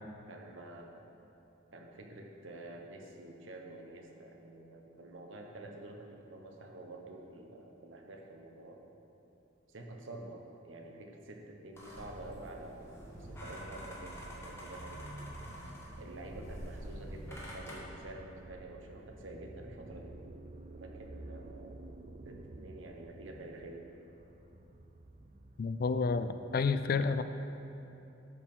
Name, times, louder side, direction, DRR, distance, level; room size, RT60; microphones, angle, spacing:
voice 1, 0.3-1.1 1.7-8.8 9.7-12.9 13.2-15.0 16.0-20.1 20.7-21.8 22.2-23.8, right 2 dB, 80° right, 1 dB, 1.1 m, -48 dB
sound 1, 11.7-17.7, equal, 15° left, 1.8 m, -47 dB
sound 2, 13.1-26.3, right 2 dB, 35° right, 0.4 m, -50 dB
voice 2, 25.6-27.2, left 4 dB, 50° left, 11 dB, 0.3 m, -30 dB
12.5 x 4.8 x 5.5 m, 2.9 s
head